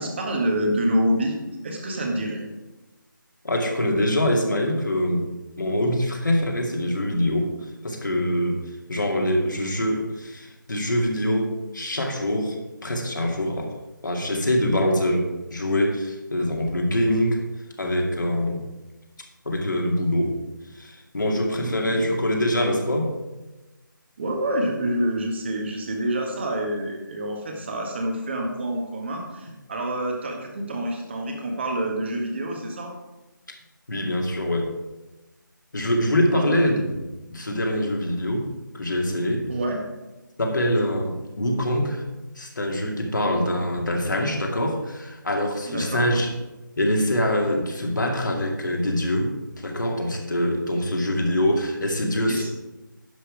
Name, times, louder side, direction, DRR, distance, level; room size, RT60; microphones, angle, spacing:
voice 1, 0.0-1.4 1.6-2.4 21.6-22.1 24.2-32.9 36.3-36.6 39.5-39.8 45.6-46.1 52.3-52.5, right 1 dB, 30° right, 2 dB, 1.7 m, -27 dB
voice 2, 3.4-5.2 5.6-7.5 7.8-8.6 8.9-12.6 12.8-13.7 14.0-17.4 17.8-18.6 19.4-20.4 20.7-23.1 33.9-34.7 35.7-37.0 37.3-38.5 38.7-39.4 40.4-42.0 42.4-46.3 46.8-52.5, left 1 dB, 65° left, 1 dB, 2.3 m, -24 dB
10.5 x 6.6 x 4.9 m, 1.1 s
figure-of-eight pair, 155°, 11 cm